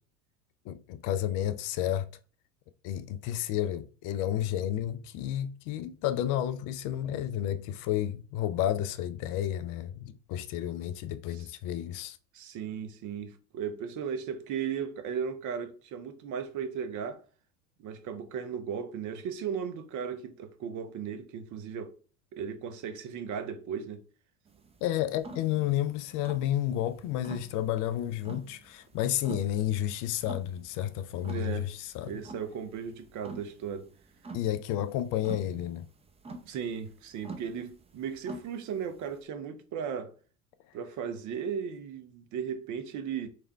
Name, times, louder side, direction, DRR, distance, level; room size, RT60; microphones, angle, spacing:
voice 1, 0.7-2.1 2.8-12.2 24.8-32.1 34.3-35.9, left 11 dB, 50° left, 0.5 m, -31 dB
voice 2, 12.3-17.2 17.8-21.9 22.3-24.0 31.3-31.7 32.0-33.9 36.4-40.1 40.7-43.3, right 7 dB, 45° right, 0.9 m, -36 dB
sound 1, 24.5-39.2, right 3 dB, 15° right, 0.6 m, -48 dB
3.5 x 3.4 x 4.4 m
hypercardioid pair, 85°, 42 cm